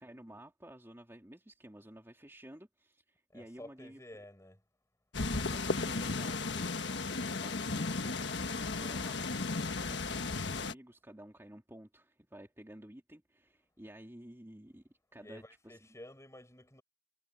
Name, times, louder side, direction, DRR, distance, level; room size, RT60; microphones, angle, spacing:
voice 1, 0.0-4.0 5.3-15.8, right 1 dB, 15° right, 2.6 m, -53 dB
voice 2, 3.3-4.6 15.2-16.8, left 1 dB, 15° left, 7.2 m, -52 dB
sound 1, 5.1-10.7, left 3 dB, 80° left, 1.5 m, -35 dB
head